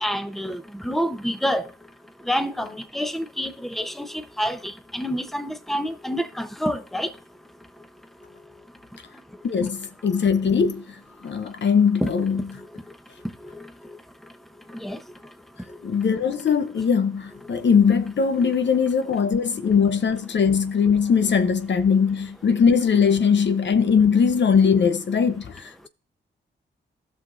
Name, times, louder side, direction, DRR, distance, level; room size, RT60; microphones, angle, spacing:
voice 1, 0.0-1.6 2.3-4.1 4.4-7.1 12.0-12.1 14.8-15.0, equal, ahead, 0.9 m, -27 dB
voice 2, 9.4-10.9 11.2-12.4 15.8-25.9, left 6 dB, 65° left, 0.8 m, -20 dB
15.5 x 5.8 x 2.6 m
cardioid pair, 50°, 20 cm